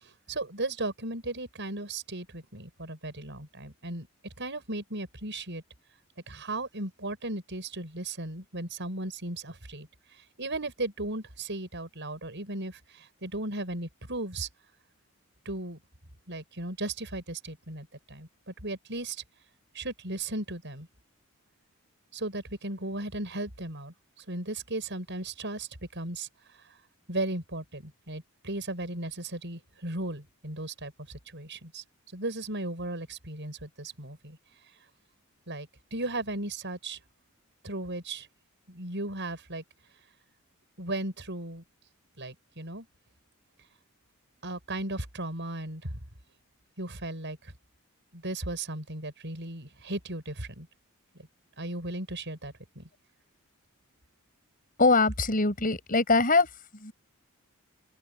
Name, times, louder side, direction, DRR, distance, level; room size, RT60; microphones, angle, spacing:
voice 1, 0.0-4.1 4.4-5.6 6.3-9.9 10.4-14.5 15.4-15.8 16.3-19.2 19.7-20.9 22.1-23.9 24.3-26.3 27.1-30.9 31.3-31.8 32.1-34.4 35.5-37.0 37.6-38.3 38.7-39.6 40.8-41.6 42.2-42.9 44.4-46.0 46.8-47.5 48.1-50.7 51.6-52.9, right 2 dB, 55° right, 7.8 m, -36 dB
voice 2, 54.8-56.5 56.8-56.9, left 3 dB, 40° left, 7.1 m, -22 dB
open air
head